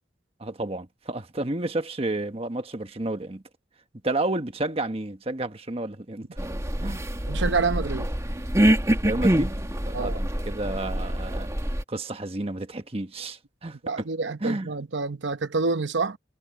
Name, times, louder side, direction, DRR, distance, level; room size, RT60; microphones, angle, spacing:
voice 1, 0.4-3.4 4.0-6.4 6.8-7.0 9.0-9.6 9.9-11.5 11.9-14.1 14.4-14.8, right 2 dB, 35° right, 1.3 m, -31 dB
sound 1, 6.4-11.8, right 1 dB, 15° right, 1.9 m, -25 dB
voice 2, 7.3-8.1 9.9-10.2 13.8-16.2, right 4 dB, 85° right, 0.9 m, -27 dB
head